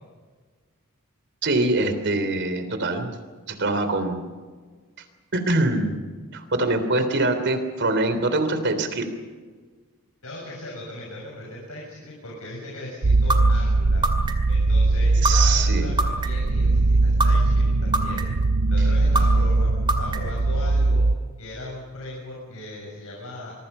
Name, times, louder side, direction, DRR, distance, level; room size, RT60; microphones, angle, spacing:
voice 1, 1.4-3.2 3.5-4.3 5.3-6.0 6.3-9.0 15.2-15.9, right 2 dB, 50° right, 9 dB, 3.3 m, -24 dB
voice 2, 10.2-14.1 14.5-18.3 18.7-21.1 21.4-23.5, left 1 dB, 75° left, -3 dB, 7.0 m, -38 dB
sound 1, 13.0-21.2, right 2 dB, 80° right, 0.7 m, -20 dB
sound 2, 13.3-13.4 14.0-14.5 15.2-15.3 16.0-16.5 17.2-17.3 17.9-18.4 19.1-19.2 19.9-20.4, right 2 dB, 20° right, 2.3 m, -23 dB
25.5 x 23.5 x 5.6 m, 1.5 s
head